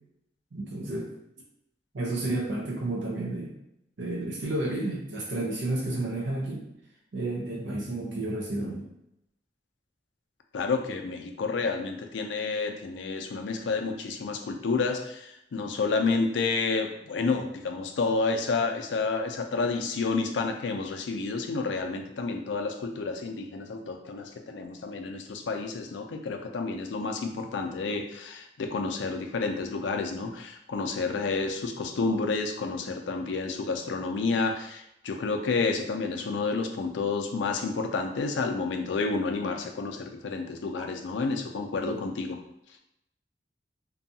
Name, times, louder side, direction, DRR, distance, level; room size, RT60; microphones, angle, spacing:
voice 1, 0.5-1.1 1.9-3.6 4.0-6.7 7.1-8.9 40.8-40.9 41.8-42.0, right 2 dB, 85° right, -2 dB, 0.6 m, -31 dB
voice 2, 10.5-42.4, left 4 dB, 90° left, 4 dB, 0.4 m, -30 dB
2.6 x 2.3 x 2.7 m, 0.81 s
head